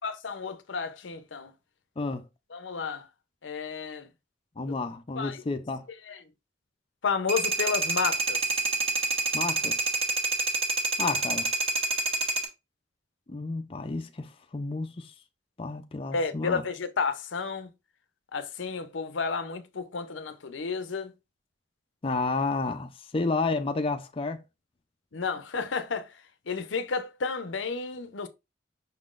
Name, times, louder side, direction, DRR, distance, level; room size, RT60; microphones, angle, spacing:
voice 1, 0.0-1.5 2.5-3.1 3.4-4.1 5.2-5.4 6.1-6.2 7.0-8.4 16.1-17.7 18.3-21.1 25.1-26.1 26.5-28.3, left 5 dB, 90° left, 0.6 m, -31 dB
voice 2, 2.0-2.3 4.6-5.9 9.3-9.8 11.0-11.5 13.3-15.1 15.6-16.6 22.0-24.4, left 3 dB, 30° left, 0.4 m, -31 dB
sound 1, 7.3-12.5, right 3 dB, 30° right, 0.9 m, -27 dB
5.7 x 3.8 x 2.4 m
head